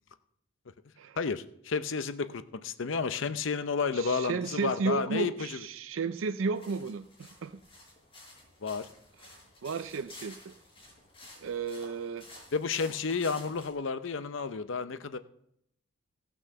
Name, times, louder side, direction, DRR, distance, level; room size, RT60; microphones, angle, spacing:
voice 1, 1.2-5.6 8.6-8.9 12.5-15.2, left 5 dB, 65° left, 12 dB, 0.6 m, -31 dB
voice 2, 3.9-7.6 9.2-10.5 11.4-12.3, right 4 dB, 70° right, 10 dB, 0.4 m, -33 dB
sound 1, 6.5-13.7, left 1 dB, 25° left, 5.2 m, -52 dB
17.0 x 6.1 x 6.7 m, 0.75 s
head